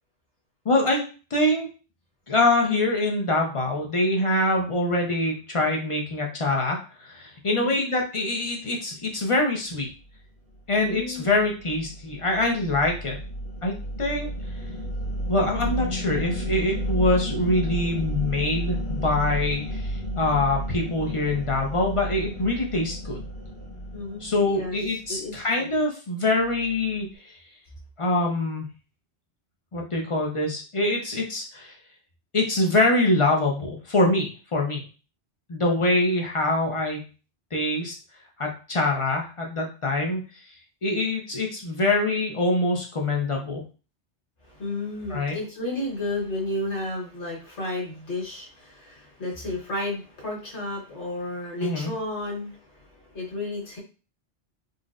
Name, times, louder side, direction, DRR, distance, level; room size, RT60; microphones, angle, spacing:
voice 1, 0.7-1.0 1.3-1.7 2.3-9.9 10.7-13.2 13.6-14.3 15.3-23.2 24.2-27.4 28.0-28.7 29.7-31.8 32.3-34.8 35.5-37.0 37.5-37.9 38.4-40.2 40.8-43.6 45.1-45.4 51.6-51.9, left 2 dB, 50° left, 0 dB, 0.4 m, -24 dB
voice 2, 7.5-7.8 10.8-11.4 23.9-24.7 25.1-25.7 44.4-53.8, left 2 dB, 80° left, -3 dB, 1.6 m, -32 dB
sound 1, 10.7-25.2, equal, 35° left, 1.2 m, -32 dB
3.9 x 2.1 x 2.4 m, 0.35 s
omnidirectional pair, 1.2 m